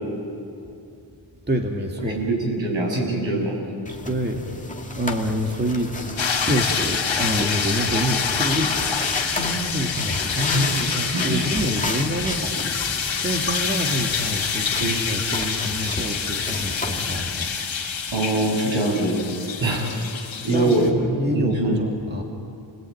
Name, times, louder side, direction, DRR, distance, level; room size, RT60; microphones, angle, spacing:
voice 1, 1.5-2.2 4.1-4.5 4.9-17.6 19.6-19.8 20.2-22.2, equal, 20° right, 2 dB, 2.2 m, -27 dB
voice 2, 2.0-3.6 10.5-11.5 14.8-15.0 15.8-16.0 18.1-19.2 19.6-19.9 20.4-20.9 21.3-21.8, right 2 dB, 70° right, 0 dB, 7.1 m, -23 dB
sound 1, 3.9-17.4, left 2 dB, 15° left, 2.2 m, -34 dB
sound 2, 6.2-20.9, left 6 dB, 70° left, 2.8 m, -27 dB
30.0 x 20.0 x 9.4 m, 2.6 s
wide cardioid pair, 110°, 47 cm